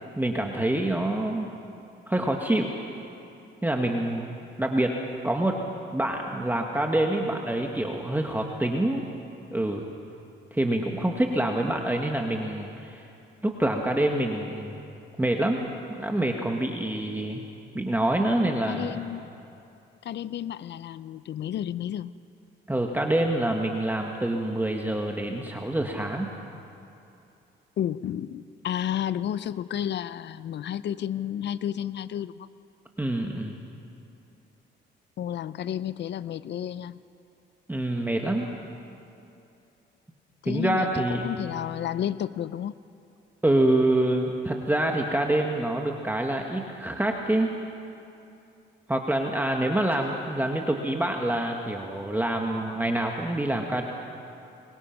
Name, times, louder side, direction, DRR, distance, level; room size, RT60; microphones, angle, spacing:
voice 1, 0.2-1.5 2.1-2.7 3.6-4.9 5.2-5.6 5.9-9.1 9.5-9.9 10.5-13.0 13.4-14.8 15.2-15.6 15.9-17.4 17.7-19.0 22.7-26.3 33.0-33.6 37.7-38.5 40.4-41.4 43.4-47.5 48.9-53.8, right 1 dB, 10° right, 2 dB, 1.6 m, -26 dB
voice 2, 18.6-19.3 20.0-22.1 27.8-32.5 35.2-37.0 40.4-42.8, left 10 dB, 60° left, 16 dB, 0.6 m, -31 dB
25.0 x 23.0 x 5.9 m, 2.7 s
cardioid pair, 90°, 20 cm